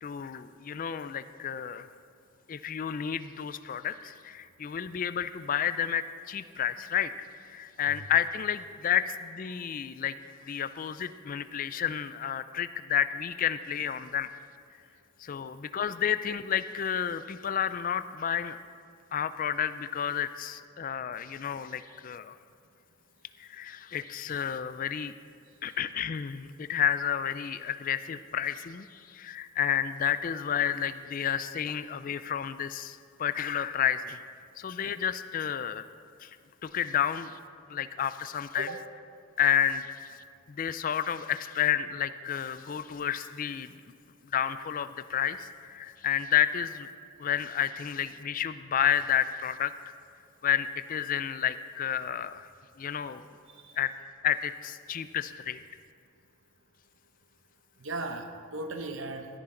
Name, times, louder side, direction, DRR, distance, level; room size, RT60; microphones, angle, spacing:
voice 1, 0.0-1.9 2.5-7.1 7.4-10.1 10.4-14.3 15.2-18.6 19.1-22.3 23.4-25.1 25.6-34.2 34.6-35.8 36.2-36.3 36.6-37.4 37.7-38.7 39.4-39.9 40.5-43.7 44.3-46.9 47.2-49.7 50.4-52.5 52.8-53.2 53.8-53.9 54.2-55.6, left 9 dB, 40° left, 13 dB, 0.3 m, -30 dB
voice 2, 53.5-53.8 57.8-59.3, right 2 dB, 70° right, 6 dB, 0.8 m, -37 dB
16.0 x 9.9 x 3.8 m, 2.3 s
head